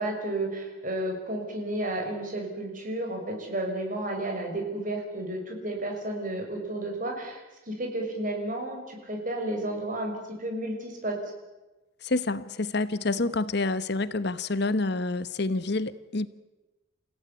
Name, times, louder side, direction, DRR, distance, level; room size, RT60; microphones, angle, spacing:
voice 1, 0.0-7.4 7.7-11.2, right 1 dB, 45° right, 2 dB, 6.6 m, -32 dB
voice 2, 12.0-16.3, left 2 dB, 60° left, 14 dB, 1.0 m, -28 dB
29.0 x 16.0 x 9.7 m, 1.1 s
head